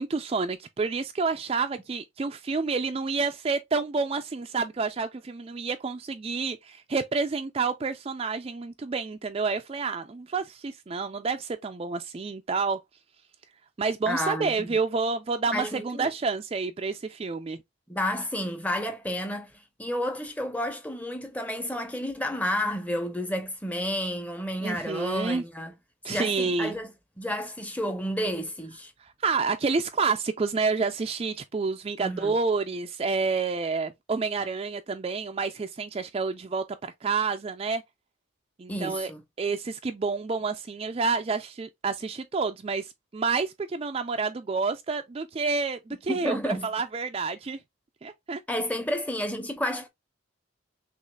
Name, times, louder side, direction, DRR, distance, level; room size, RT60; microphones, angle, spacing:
voice 1, 0.0-12.8 13.8-17.6 24.6-25.4 26.0-26.8 29.0-37.8 38.6-39.1 39.4-46.4 46.6-47.6 48.0-48.4, right 4 dB, 30° right, 0.3 m, -29 dB
voice 2, 14.1-14.8 15.5-16.1 17.9-19.5 19.8-25.7 26.1-28.9 32.0-32.3 38.7-39.2 46.1-46.7 48.5-49.9, equal, 10° left, 0.7 m, -31 dB
6.2 x 2.4 x 2.3 m
head